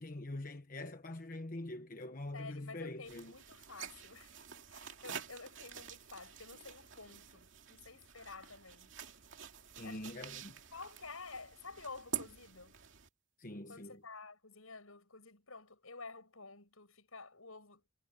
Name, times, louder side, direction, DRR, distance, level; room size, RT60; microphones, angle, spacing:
voice 1, 0.0-3.3 5.1-5.2 9.8-10.5 13.4-14.0, left 1 dB, 40° left, 1.2 m, -44 dB
voice 2, 2.3-8.9 9.8-10.2 10.7-12.8 13.7-17.8, left 4 dB, 80° left, 7.1 m, -51 dB
sound 1, 3.0-13.1, right 8 dB, 60° right, 2.8 m, -48 dB
head